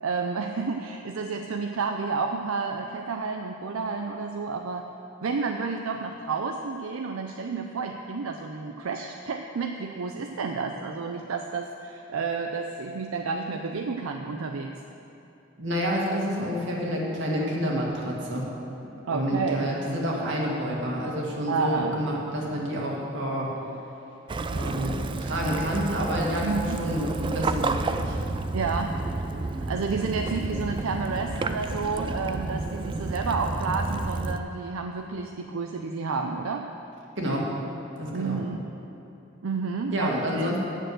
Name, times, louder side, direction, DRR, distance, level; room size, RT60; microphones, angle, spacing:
voice 1, 0.0-4.9 5.2-14.7 19.1-19.7 21.5-22.0 26.4-26.8 28.5-29.0 29.7-36.7 37.3-37.4 38.1-38.6 39.4-40.5, right 4 dB, 85° right, 4 dB, 0.5 m, -30 dB
voice 2, 15.6-18.5 19.1-23.5 24.5-28.2 37.2-37.4 38.0-38.4 39.9-40.6, equal, 60° right, -3 dB, 1.9 m, -28 dB
Waves surf / Splash splatter / Trickle dribble, 24.3-34.4, right 3 dB, 25° right, 0.3 m, -30 dB
9.0 x 6.6 x 7.7 m, 2.9 s
head